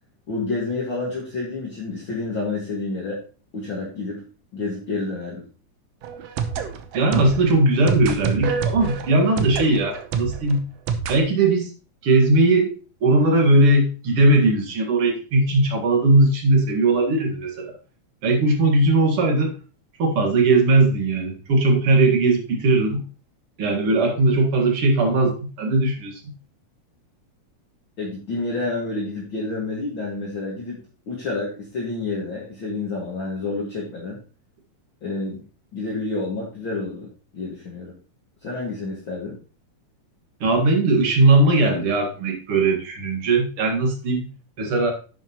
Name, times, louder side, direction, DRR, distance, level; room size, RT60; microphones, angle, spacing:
voice 1, 0.3-3.2 3.5-4.2 4.5-5.4 28.0-30.8 31.1-34.2 35.0-35.4 35.7-37.9 38.4-39.4, left 3 dB, 45° left, -4 dB, 2.4 m, -29 dB
sound 1, 6.0-11.2, right 6 dB, 65° right, 1.8 m, -28 dB
voice 2, 6.9-10.7 11.1-11.7 12.0-12.7 13.0-17.7 18.2-19.5 20.0-23.0 23.6-26.3 40.4-44.3 44.6-44.9, right 2 dB, 50° right, 2 dB, 2.6 m, -19 dB
10.5 x 7.6 x 3.0 m, 0.35 s
omnidirectional pair, 3.5 m